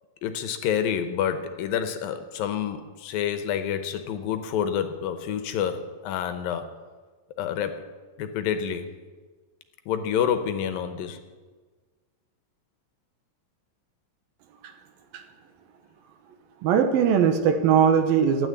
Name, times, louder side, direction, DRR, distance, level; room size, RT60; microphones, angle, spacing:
voice 1, 0.2-6.6 7.4-7.8 8.2-8.9 9.9-11.2, left 8 dB, 75° left, 9 dB, 2.6 m, -28 dB
voice 2, 16.6-18.5, right 7 dB, 80° right, 7 dB, 2.9 m, -20 dB
12.5 x 9.4 x 9.6 m, 1.4 s
omnidirectional pair, 4.3 m